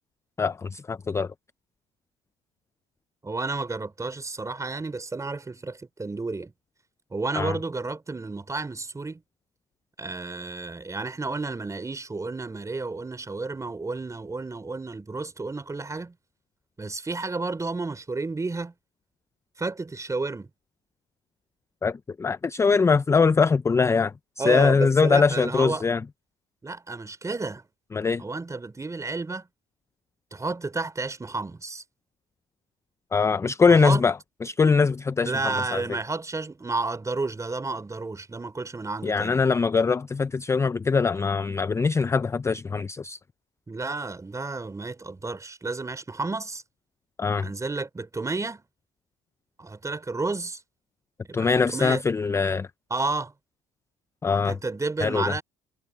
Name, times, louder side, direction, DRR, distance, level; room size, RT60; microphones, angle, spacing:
voice 1, 0.4-1.3 7.4-7.6 21.8-26.0 27.9-28.2 33.1-34.1 34.4-35.8 39.0-43.2 47.2-47.5 51.3-52.7 54.2-54.5 55.0-55.3, left 5 dB, 15° left, 0.4 m, -22 dB
voice 2, 3.2-6.5 7.1-9.2 10.0-16.1 16.8-18.7 19.6-20.5 24.4-25.8 26.6-27.6 28.2-29.5 30.3-31.8 33.7-34.0 35.2-39.4 43.7-46.6 47.4-48.6 49.6-50.6 51.2-52.0 52.9-53.3 54.5-55.4, right 3 dB, 20° right, 3.8 m, -31 dB
cardioid pair, 110°, 17 cm